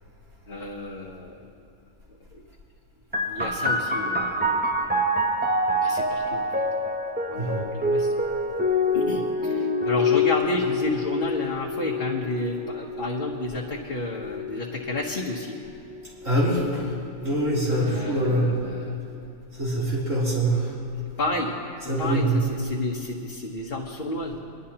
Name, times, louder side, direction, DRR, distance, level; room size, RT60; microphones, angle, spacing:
voice 1, 0.5-1.4 3.3-4.7 5.8-6.9 7.3-8.1 8.9-15.6 17.7-19.0 21.2-21.6 22.0-24.4, left 2 dB, 45° left, -4 dB, 1.3 m, -31 dB
sound 1, 3.1-16.4 17.2-18.0, left 1 dB, 15° right, 0.4 m, -27 dB
voice 2, 16.2-16.9 17.2-18.5 19.5-20.7 21.8-22.4, right 1 dB, 65° right, -8 dB, 3.7 m, -24 dB
24.5 x 11.5 x 2.9 m, 2.6 s
omnidirectional pair, 1.5 m